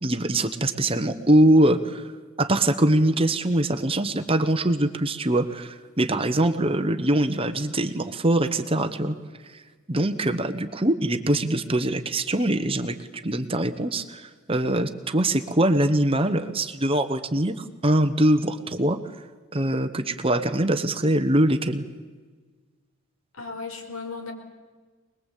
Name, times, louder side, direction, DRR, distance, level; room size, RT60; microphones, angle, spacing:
voice 1, 0.0-2.0 2.4-9.1 9.9-13.0 13.2-19.0 19.5-21.8, right 1 dB, 25° right, 9 dB, 1.1 m, -23 dB
voice 2, 23.4-24.3, left 4 dB, 75° left, 4 dB, 4.6 m, -35 dB
24.5 x 21.0 x 8.4 m, 1.4 s
head